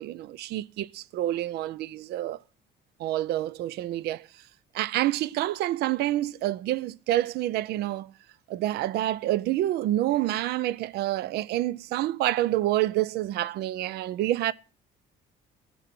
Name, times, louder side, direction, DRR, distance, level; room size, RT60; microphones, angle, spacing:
voice 1, 0.0-2.4 3.0-4.3 4.7-8.1 8.5-14.5, right 14 dB, 75° right, 0.5 m, -28 dB
15.5 x 7.0 x 5.9 m
cardioid pair, 110°, 17 cm